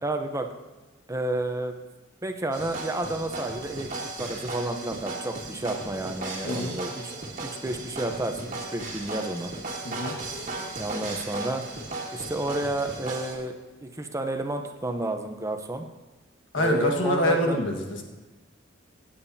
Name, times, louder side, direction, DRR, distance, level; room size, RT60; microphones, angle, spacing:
voice 1, 0.0-0.5 1.1-1.7 2.2-3.9 4.2-7.1 7.4-9.5 10.5-11.6 12.1-13.6 13.8-15.9 16.6-17.6, right 2 dB, 15° right, 5 dB, 0.8 m, -31 dB
sound 1, 2.5-13.4, right 2 dB, 40° right, 1.7 m, -36 dB
voice 2, 6.4-6.7 9.8-10.2 16.5-18.0, left 1 dB, 70° left, 2 dB, 1.7 m, -25 dB
16.0 x 8.9 x 2.8 m, 1.2 s
head